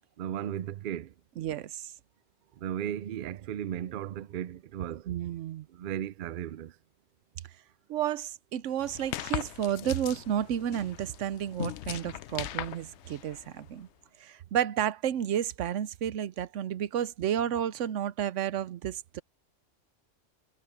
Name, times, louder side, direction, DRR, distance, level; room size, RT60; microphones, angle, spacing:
voice 1, 0.2-1.1 2.6-5.1 5.7-6.7, right 10 dB, 60° right, 0.6 m, -35 dB
voice 2, 1.4-1.9 5.1-5.7 7.9-13.9 14.2-19.2, right 10 dB, 80° right, 1.0 m, -31 dB
sound 1, 8.8-13.8, left 12 dB, 70° left, 0.8 m, -39 dB
omnidirectional pair, 1.3 m